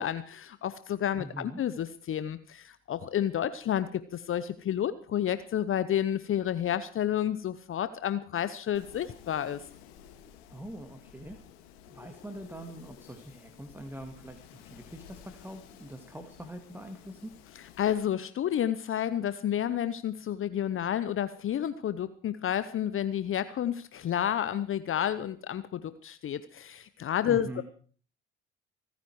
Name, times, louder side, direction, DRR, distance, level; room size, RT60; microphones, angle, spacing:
voice 1, 0.0-9.6 17.8-27.6, left 10 dB, 45° left, 14 dB, 0.9 m, -30 dB
voice 2, 1.2-1.6 10.5-11.4 11.9-17.3 27.3-27.6, right 1 dB, 5° right, 6 dB, 2.2 m, -43 dB
Wind, 8.7-17.9, left 9 dB, 80° left, 2.2 m, -53 dB
26.0 x 9.5 x 4.8 m, 0.43 s
hypercardioid pair, 55°, 30 cm